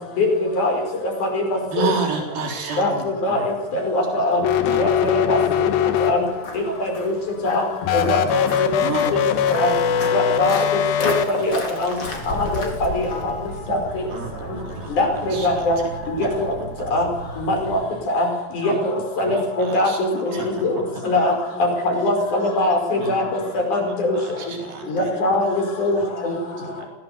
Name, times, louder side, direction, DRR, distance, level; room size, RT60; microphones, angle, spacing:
voice 1, 1.7-3.5 4.7-4.8 8.8-9.5 10.2-10.7 12.1-12.2 14.1-15.9 16.2-16.3 18.6-18.7 19.2-20.0 20.3-20.6 23.0-23.5 23.8-25.1 26.0-26.1 26.8-26.9, right 5 dB, 85° right, 2 dB, 5.5 m, -31 dB
voice 2, 3.9-4.4 4.8-4.9 5.3-5.4 6.0-6.2 6.8-6.9 7.4-7.6 7.9-8.5 9.5-9.7 10.1-10.6 11.0-11.1 11.4-11.5 11.8-11.9 12.3-12.4 12.8-12.9 13.2-13.3 13.7-13.8 15.0-15.8 16.4-16.5 16.9-17.1 17.5-17.8 18.1-18.3 18.6-18.7 19.2-20.1 20.5-20.7 21.0-21.3 21.8-23.2 23.7-24.1 24.9-26.0 26.2-26.3, left 2 dB, 60° left, 3 dB, 6.6 m, -21 dB
sound 1, 4.4-6.6 7.8-11.3, left 9 dB, 90° left, 3.2 m, -21 dB
Walk footsteps, 5.0-13.6, left 3 dB, 40° left, 4.3 m, -35 dB
sound 2, 12.2-17.8, right 2 dB, 55° right, 5.3 m, -37 dB
voice 3, 20.5-22.8 23.2-23.3 23.8-24.2 24.8-26.8, left 2 dB, ahead, -2 dB, 3.0 m, -40 dB
25.0 x 17.5 x 8.1 m, 1.2 s
omnidirectional pair, 4.0 m